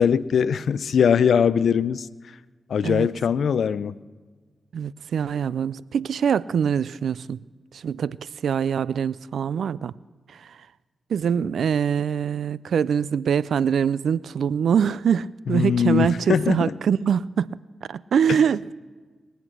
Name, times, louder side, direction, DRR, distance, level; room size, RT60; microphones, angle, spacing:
voice 1, 0.0-2.1 2.7-4.0 15.5-16.7, left 7 dB, 75° left, 0.4 m, -21 dB
voice 2, 4.7-7.4 7.7-10.0 10.3-10.5 11.1-17.6 17.9-18.7, right 7 dB, 75° right, 0.3 m, -24 dB
22.0 x 8.1 x 6.1 m
supercardioid pair, 40°, 0 cm